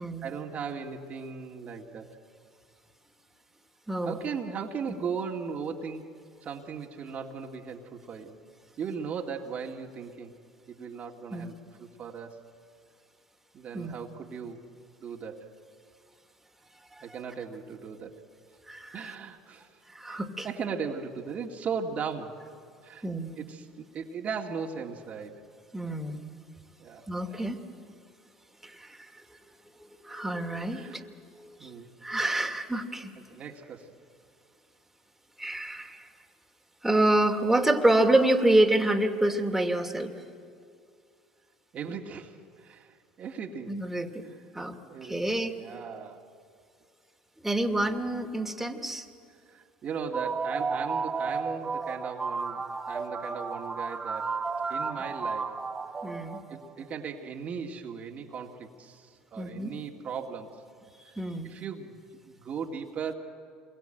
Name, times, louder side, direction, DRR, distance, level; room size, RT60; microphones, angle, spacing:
voice 1, 0.0-2.1 4.0-6.1 6.4-8.4 8.8-10.3 10.7-12.4 13.5-14.7 15.0-15.6 17.0-18.2 18.9-19.8 20.1-22.4 22.8-23.1 23.4-25.4 26.8-27.4 30.7-31.1 31.6-31.9 33.3-33.9 41.7-43.8 44.9-46.3 49.5-55.6 56.5-60.6 61.0-61.1 61.4-62.0 62.3-63.1, right 6 dB, 45° right, 2 dB, 2.3 m, -38 dB
voice 2, 3.9-4.2 11.3-11.5 13.7-13.9 18.7-19.1 19.9-20.5 23.0-23.3 25.7-26.2 27.1-27.6 28.6-29.1 29.8-31.7 32.0-33.1 35.4-36.1 36.8-40.1 43.7-44.3 44.5-45.5 47.4-49.1 56.0-56.4 59.4-59.7 61.1-61.5, right 1 dB, 5° right, 3 dB, 2.6 m, -27 dB
sound 1, 49.9-56.8, right 4 dB, 25° right, 1.6 m, -33 dB
27.0 x 22.5 x 9.1 m, 2.3 s
hypercardioid pair, 75°, 3 cm